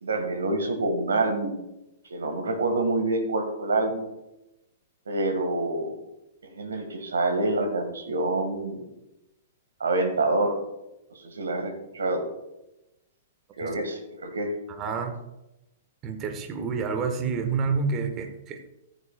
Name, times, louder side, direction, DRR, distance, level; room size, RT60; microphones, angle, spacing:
voice 1, 0.0-1.6 2.1-4.0 5.1-6.0 6.4-8.9 9.8-10.6 11.1-12.2 13.6-14.5, right 2 dB, 70° right, 6 dB, 1.8 m, -27 dB
voice 2, 14.7-15.2 16.0-18.7, right 5 dB, 25° right, 6 dB, 1.4 m, -29 dB
14.0 x 9.9 x 2.4 m, 0.92 s
figure-of-eight pair, 110°, 0 cm